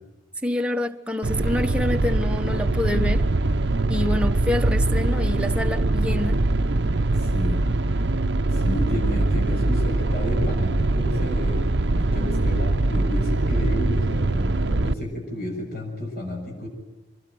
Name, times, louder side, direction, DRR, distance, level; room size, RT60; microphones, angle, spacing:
voice 1, 0.4-3.3 3.9-6.4, left 1 dB, 5° right, 1.2 m, -27 dB
sound 1, 1.2-14.9, right 2 dB, 65° right, 0.8 m, -22 dB
voice 2, 7.1-7.7 8.5-16.7, left 1 dB, 50° left, 7.3 m, -31 dB
25.5 x 21.0 x 9.2 m
head